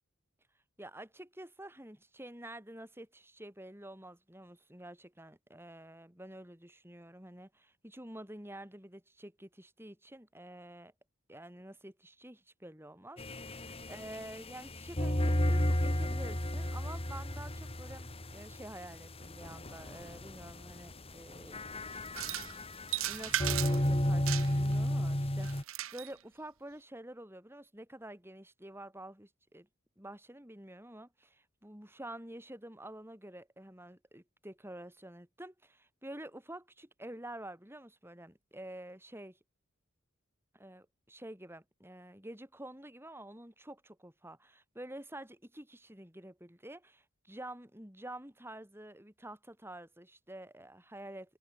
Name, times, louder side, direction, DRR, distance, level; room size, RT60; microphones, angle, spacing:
voice 1, 0.8-10.9 11.3-21.6 22.2-29.7 30.0-39.4 40.5-51.4, right 1 dB, 10° right, 6.7 m, -49 dB
sound 1, 13.2-25.6, left 1 dB, 30° left, 3.3 m, -33 dB
sound 2, 22.1-22.5 22.9-23.9 24.3-24.7 25.4-26.1, right 12 dB, 90° right, 1.1 m, -35 dB
head